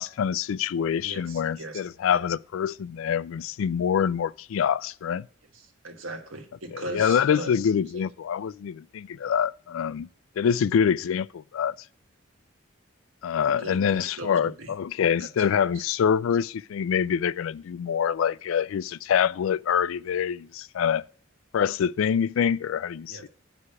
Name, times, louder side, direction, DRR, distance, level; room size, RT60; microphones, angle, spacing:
voice 1, 0.0-5.3 6.7-10.1 10.4-11.7 13.2-21.1 21.5-23.3, left 7 dB, 80° left, 0.3 m, -25 dB
voice 2, 1.0-1.8 2.1-2.2 5.8-8.0 13.4-14.7 23.1-23.3, right 2 dB, 85° right, 1.5 m, -39 dB
9.7 x 4.9 x 5.7 m
head